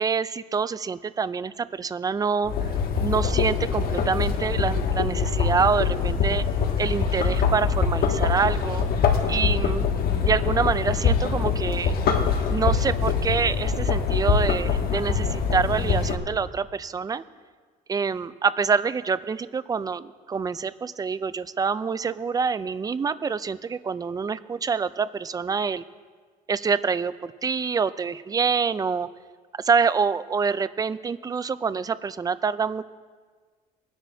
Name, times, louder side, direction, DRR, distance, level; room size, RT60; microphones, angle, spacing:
voice 1, 0.0-2.5 3.0-6.4 6.8-8.9 9.3-9.9 10.2-12.0 12.5-17.2 17.9-25.8 26.5-29.1 29.6-32.8, right 5 dB, 20° right, 15 dB, 0.4 m, -26 dB
sound 1, 2.4-16.1, left 6 dB, 65° left, 1.4 m, -24 dB
20.5 x 10.5 x 2.7 m, 1.5 s
cardioid pair, 110°, 17 cm